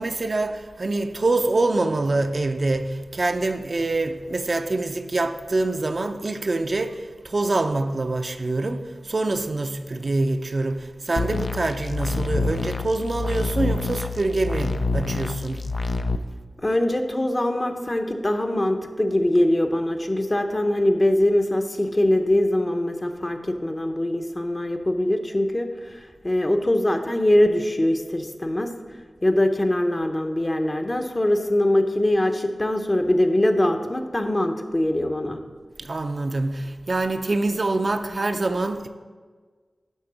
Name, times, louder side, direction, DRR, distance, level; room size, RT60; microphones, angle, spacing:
voice 1, 0.0-15.7 35.8-38.9, right 2 dB, 50° right, 0.5 m, -25 dB
sound 1, 11.2-16.2, left 3 dB, 65° left, 0.4 m, -27 dB
voice 2, 16.6-28.7 29.2-35.4, left 1 dB, 30° left, 0.8 m, -22 dB
11.0 x 3.7 x 6.0 m
wide cardioid pair, 85°, 0 cm